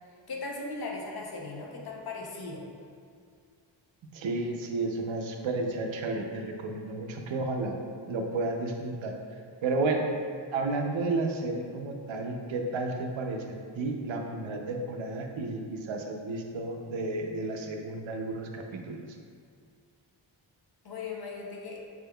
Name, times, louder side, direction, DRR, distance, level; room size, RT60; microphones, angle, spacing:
voice 1, 0.3-2.7 20.8-21.8, left 3 dB, 50° left, -1 dB, 0.7 m, -38 dB
voice 2, 4.1-7.8 8.1-9.1 9.6-10.0 10.5-13.4 13.8-19.0, right 2 dB, 70° right, 2 dB, 0.6 m, -32 dB
5.8 x 3.5 x 2.2 m, 2.2 s
wide cardioid pair, 155°, 48 cm